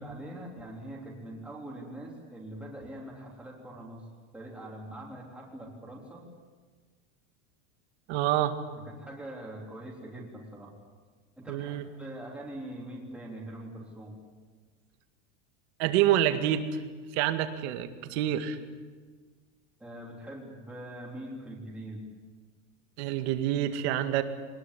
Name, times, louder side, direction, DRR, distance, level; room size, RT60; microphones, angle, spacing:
voice 1, 0.0-4.1 4.3-6.3 8.8-10.8 11.4-14.2 19.8-22.0, right 1 dB, 5° right, -3 dB, 3.5 m, -43 dB
voice 2, 8.1-8.6 11.5-11.8 15.8-16.8 17.1-18.6 23.0-24.2, right 11 dB, 55° right, 8 dB, 2.1 m, -27 dB
22.5 x 20.0 x 9.8 m, 1.5 s
supercardioid pair, 175°, 39 cm